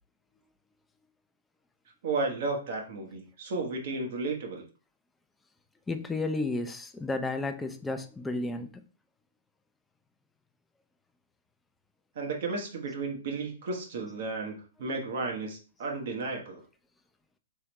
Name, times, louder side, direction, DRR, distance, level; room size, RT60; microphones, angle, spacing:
voice 1, 2.0-4.7 12.1-16.6, right 3 dB, 60° right, 1.2 m, -33 dB
voice 2, 5.9-8.8 14.8-15.0, left 2 dB, 10° left, 0.5 m, -32 dB
3.6 x 3.3 x 3.0 m
hypercardioid pair, 125°, 0 cm